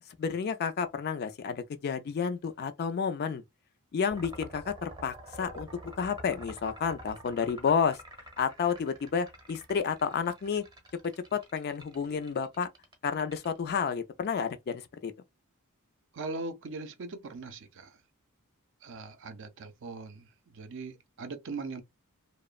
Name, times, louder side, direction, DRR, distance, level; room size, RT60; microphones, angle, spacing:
voice 1, 0.2-3.4 3.9-5.7 6.0-8.0 8.4-10.6 11.0-12.7 13.0-15.1, left 6 dB, 45° left, 0.3 m, -31 dB
sound 1, 4.1-13.8, equal, 20° right, 0.7 m, -47 dB
voice 2, 16.1-18.0 18.8-21.8, right 3 dB, 55° right, 0.5 m, -40 dB
2.9 x 2.0 x 2.3 m
head